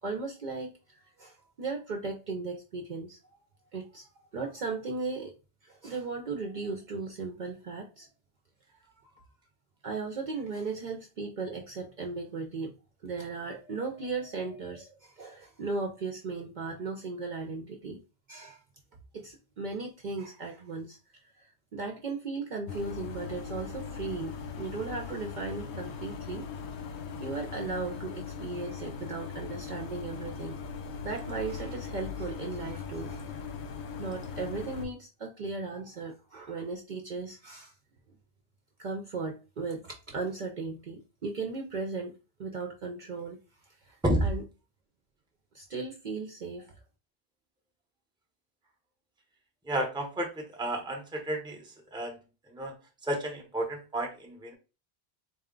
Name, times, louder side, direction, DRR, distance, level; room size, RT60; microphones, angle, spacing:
voice 1, 0.0-3.2 3.7-5.3 5.6-8.1 9.2-9.3 9.8-12.7 13.0-18.0 18.3-18.6 19.1-26.5 27.2-30.6 31.0-33.4 34.0-37.7 38.8-43.4 43.8-44.4 45.5-46.8, right 4 dB, 55° right, 2 dB, 0.6 m, -37 dB
sound 1, 22.7-34.9, left 6 dB, 90° left, 0.9 m, -39 dB
voice 2, 49.7-52.2 52.5-52.7 53.0-54.5, right 1 dB, 5° right, 3 dB, 0.6 m, -31 dB
4.2 x 2.2 x 3.6 m, 0.31 s
omnidirectional pair, 1.1 m